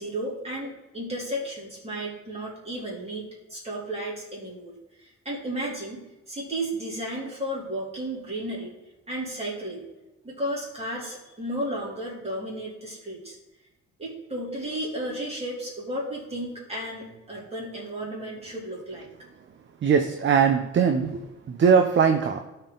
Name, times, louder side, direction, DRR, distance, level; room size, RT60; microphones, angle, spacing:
voice 1, 0.0-8.7 9.1-9.8 10.2-13.4 14.0-19.1, right 1 dB, 20° right, -4 dB, 3.1 m, -33 dB
voice 2, 19.8-22.4, right 6 dB, 40° right, 6 dB, 0.6 m, -21 dB
12.0 x 4.5 x 3.9 m, 1.0 s
cardioid pair, 90°, 30 cm